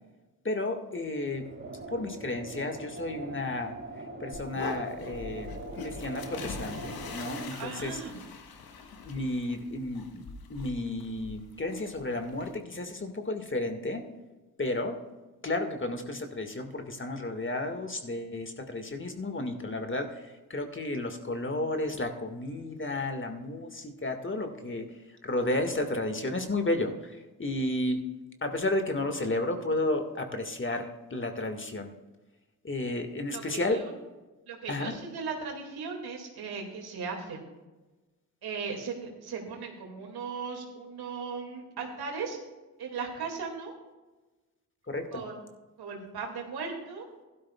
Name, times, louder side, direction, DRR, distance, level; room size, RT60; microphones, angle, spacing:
voice 1, 0.4-1.5 1.9-3.7 4.2-5.5 5.8-8.0 9.1-10.2 10.5-14.0 14.6-15.0 15.4-24.9 25.2-28.0 28.4-31.9 32.6-33.8 34.7-34.9 44.9-45.2, left 2 dB, 30° left, 5 dB, 1.9 m, -32 dB
sound 1, 1.2-7.4, right 2 dB, 35° right, 3.4 m, -42 dB
sound 2, 4.3-12.6, left 4 dB, 70° left, 1.4 m, -43 dB
voice 2, 7.5-8.1 33.3-33.9 34.5-37.4 38.4-42.4 42.8-43.7 45.1-45.4 45.8-47.1, right 5 dB, 75° right, 2 dB, 2.4 m, -37 dB
16.0 x 12.0 x 2.4 m, 1.2 s
supercardioid pair, 40°, 38 cm